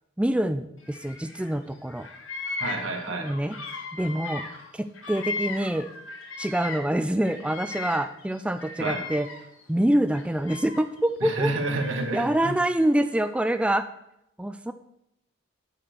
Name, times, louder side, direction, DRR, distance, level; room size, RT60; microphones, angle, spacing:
voice 1, 0.2-2.1 3.1-3.6 3.9-4.4 4.7-5.9 6.4-9.3 9.7-11.5 12.1-13.9 14.4-14.7, right 1 dB, 5° right, 9 dB, 0.3 m, -26 dB
Bird vocalization bird call bird song, 0.8-1.6 1.8-6.9 7.2-9.6 10.1-11.1 11.8-12.9, left 4 dB, 85° left, 1.5 m, -37 dB
voice 2, 2.6-3.3 8.8-9.0 11.2-12.5, right 2 dB, 80° right, 4 dB, 1.6 m, -29 dB
7.5 x 6.0 x 6.7 m, 0.81 s
head